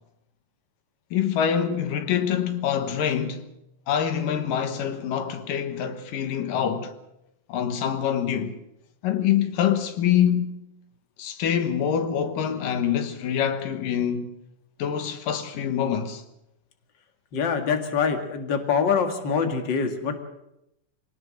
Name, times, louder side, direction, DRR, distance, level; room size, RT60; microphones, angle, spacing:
voice 1, 1.1-3.4 3.9-6.9 7.5-8.6 9.0-10.6 11.2-14.3 14.8-16.2, left 9 dB, 80° left, 3.0 m, -25 dB
voice 2, 17.3-20.1, left 6 dB, 40° left, 2.3 m, -24 dB
23.0 x 18.5 x 6.4 m
omnidirectional pair, 3.8 m